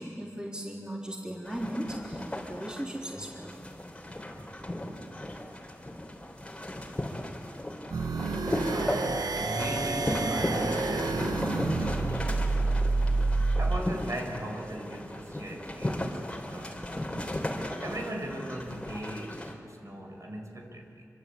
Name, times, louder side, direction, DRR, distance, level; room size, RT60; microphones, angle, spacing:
voice 1, 0.0-3.6, right 1 dB, 15° right, -2 dB, 3.5 m, -37 dB
sound 1, 1.4-19.5, left 1 dB, 20° left, 3.4 m, -35 dB
sound 2, 7.9-13.8, right 3 dB, 80° right, 1.0 m, -29 dB
voice 2, 8.6-12.3 13.6-17.1 17.8-21.0, right 1 dB, 55° right, 2 dB, 5.2 m, -38 dB
27.0 x 25.0 x 8.5 m, 2.5 s
wide cardioid pair, 95°, 6 cm